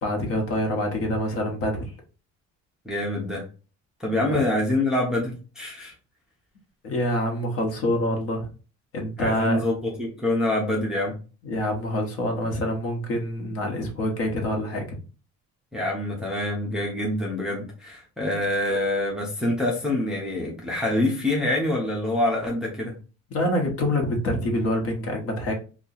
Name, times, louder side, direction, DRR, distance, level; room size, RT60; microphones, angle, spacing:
voice 1, 0.0-1.8 4.3-4.4 6.8-8.5 8.9-9.6 11.4-15.0 23.3-25.5, left 1 dB, 50° left, 2 dB, 1.0 m, -26 dB
voice 2, 2.9-3.4 4.0-5.9 9.2-11.2 15.7-22.9, left 1 dB, ahead, -3 dB, 0.5 m, -26 dB
2.7 x 2.3 x 3.8 m, 0.34 s
cardioid pair, 175°, 29 cm